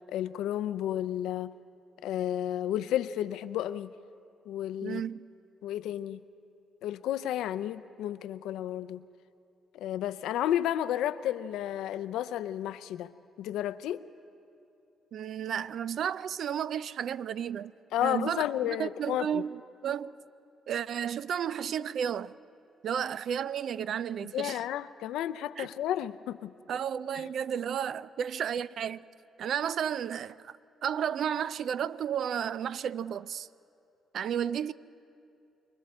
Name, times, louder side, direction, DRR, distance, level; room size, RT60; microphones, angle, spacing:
voice 1, 0.1-1.5 2.0-3.9 4.5-5.0 5.6-6.2 6.8-9.0 9.7-13.1 13.4-14.1 17.9-19.4 24.3-26.5 27.2-27.3, left 11 dB, 85° left, 0.5 m, -32 dB
voice 2, 4.8-5.2 15.1-17.7 18.0-20.1 20.7-22.3 22.8-24.6 25.6-25.7 26.7-29.1 29.4-30.6 30.8-33.5 34.1-34.7, right 8 dB, 65° right, 0.4 m, -32 dB
28.0 x 22.5 x 4.4 m
cardioid pair, 90°, 0 cm